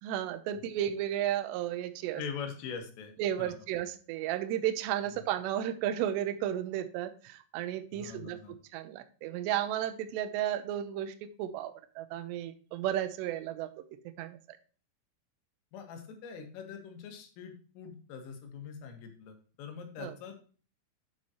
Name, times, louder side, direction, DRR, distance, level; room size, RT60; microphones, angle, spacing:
voice 1, 0.0-2.2 3.2-8.4 8.7-13.7 14.2-14.6 20.0-20.1, right 11 dB, 80° right, 10 dB, 2.5 m, -33 dB
voice 2, 2.2-3.1 3.4-3.5 7.9-8.5 15.7-20.5, left 6 dB, 75° left, 5 dB, 4.2 m, -43 dB
9.3 x 7.2 x 3.0 m, 0.40 s
omnidirectional pair, 6.0 m